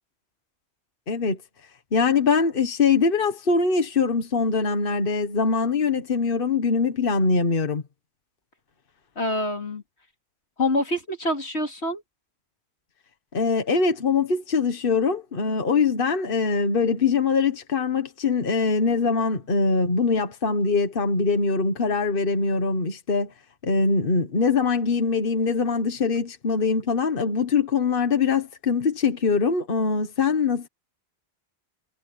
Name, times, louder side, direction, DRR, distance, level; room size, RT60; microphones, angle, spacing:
voice 1, 1.1-1.4 1.9-7.8 13.3-23.3 23.6-30.7, left 4 dB, 55° left, 1.5 m, -23 dB
voice 2, 9.2-9.8 10.6-12.0, left 1 dB, 85° left, 3.5 m, -26 dB
omnidirectional pair, 1.1 m